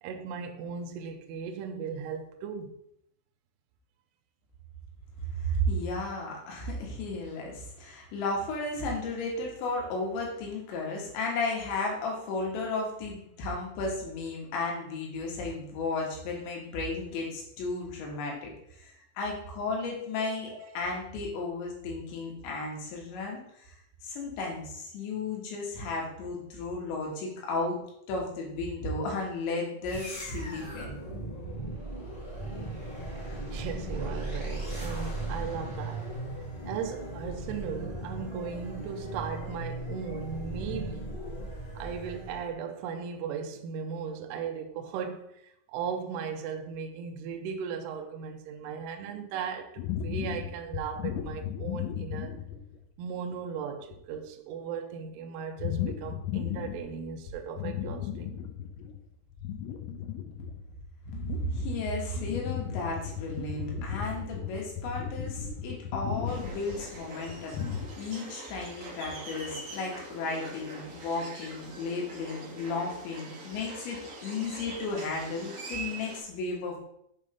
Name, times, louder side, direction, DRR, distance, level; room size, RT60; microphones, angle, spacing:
voice 1, 0.0-2.8 20.3-20.6 33.5-36.2 36.7-41.2 41.8-52.4 53.0-58.4, right 6 dB, 80° right, 2.4 m, -37 dB
voice 2, 5.4-18.5 18.8-23.8 24.0-27.8 28.1-30.9 61.4-67.7 68.0-76.8, left 2 dB, 70° left, 3.7 m, -34 dB
sound 1, 29.8-42.5, right 2 dB, 35° left, 0.7 m, -37 dB
sound 2, 49.8-52.8 53.3-53.4 53.8-54.2 55.6-57.0 57.3-59.0 59.3-67.9, left 8 dB, 90° left, 3.3 m, -35 dB
sound 3, 66.3-76.2, right 2 dB, 60° right, 1.6 m, -43 dB
7.6 x 3.6 x 5.2 m
omnidirectional pair, 5.5 m